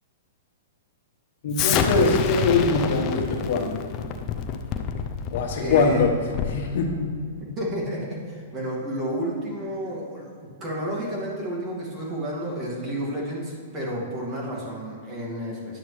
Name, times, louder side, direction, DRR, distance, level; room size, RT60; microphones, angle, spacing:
voice 1, 1.4-3.7 5.3-6.1 6.5-6.9, left 4 dB, 60° left, 1 dB, 1.2 m, -22 dB
Explosion, 1.5-6.7, left 7 dB, 30° left, 0.5 m, -27 dB
voice 2, 5.6-6.1 7.6-15.8, right 1 dB, 25° right, -4 dB, 2.0 m, -31 dB
10.5 x 7.3 x 3.2 m, 2.1 s
hypercardioid pair, 150°, 0 cm